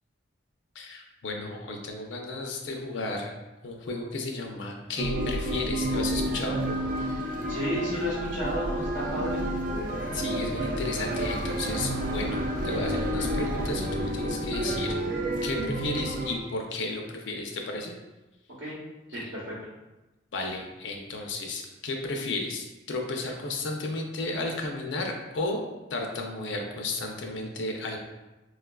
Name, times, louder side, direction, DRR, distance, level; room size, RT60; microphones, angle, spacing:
voice 1, 0.7-3.3 3.6-6.9 10.1-15.0 15.4-18.0 19.1-19.3 20.3-25.6 25.9-28.0, left 2 dB, 70° left, 2 dB, 0.5 m, -33 dB
sound 1, 5.0-16.4, right 1 dB, 45° right, 0.3 m, -30 dB
voice 2, 7.5-9.5 18.6-18.8 19.1-19.5, equal, 70° right, -6 dB, 0.8 m, -32 dB
4.6 x 2.3 x 2.2 m, 1.1 s
head